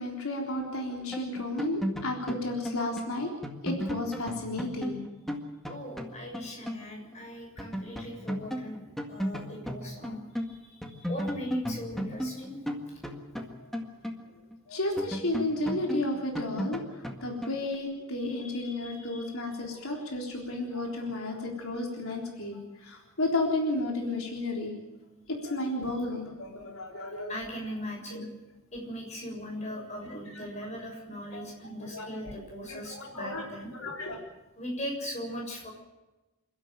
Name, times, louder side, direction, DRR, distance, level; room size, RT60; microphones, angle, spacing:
voice 1, 0.0-3.3 3.6-5.0 14.7-24.8 25.3-27.3 28.1-28.3 29.7-29.8 30.3-30.4 31.3-31.4 31.8-32.3 32.7-33.4 33.7-34.2, left 2 dB, 80° left, 0 dB, 3.8 m, -33 dB
sound 1, 1.1-6.9 7.1-7.2 7.6-10.5 10.8-14.6 15.0-17.7, equal, ahead, 1.9 m, -35 dB
voice 2, 5.7-8.8 9.1-12.6 18.2-19.3 27.3-28.3 28.7-33.7 34.5-35.7, equal, 30° left, 0 dB, 7.0 m, -40 dB
28.0 x 12.5 x 9.1 m, 1.1 s
head